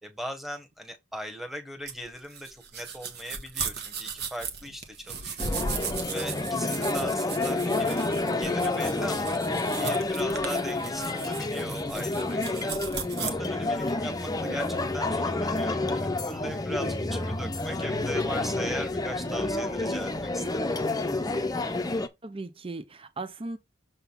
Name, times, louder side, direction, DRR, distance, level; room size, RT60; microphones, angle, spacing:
voice 1, 0.0-9.4 9.7-12.7 13.1-20.6, equal, ahead, 1.4 m, -39 dB
sound 1, 1.9-13.3, right 5 dB, 55° right, 1.5 m, -36 dB
sound 2, 5.4-22.1, left 2 dB, 20° left, 0.7 m, -29 dB
voice 2, 22.2-23.6, right 2 dB, 25° right, 0.6 m, -38 dB
6.9 x 3.7 x 5.8 m
head